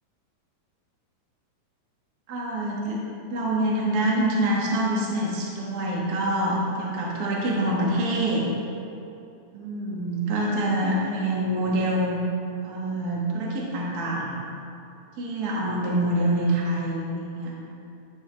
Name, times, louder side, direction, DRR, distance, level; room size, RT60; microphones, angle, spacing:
voice 1, 2.3-3.0 3.3-8.5 9.5-12.2 12.6-14.3 15.2-17.5, right 1 dB, 75° right, -4 dB, 0.8 m, -26 dB
12.0 x 6.5 x 3.3 m, 2.7 s
omnidirectional pair, 4.0 m